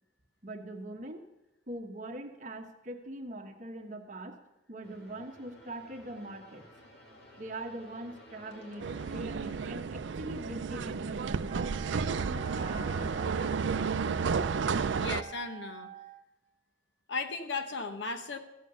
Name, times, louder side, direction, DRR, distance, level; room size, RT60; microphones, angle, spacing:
voice 1, 0.4-1.2 1.7-4.4 4.7-6.6 7.4-11.6 11.9-13.5, right 1 dB, 40° right, 4 dB, 1.2 m, -42 dB
sound 1, 4.8-9.7, equal, 60° left, 2.3 m, -54 dB
sound 2, 8.8-15.2, right 5 dB, 75° right, 0.4 m, -32 dB
Wind instrument woodwind instrument, 11.4-16.2, right 4 dB, 25° right, 0.7 m, -47 dB
voice 2, 15.0-15.9 17.1-18.4, left 4 dB, 75° left, 7 dB, 1.1 m, -36 dB
14.5 x 7.2 x 6.8 m, 0.96 s
head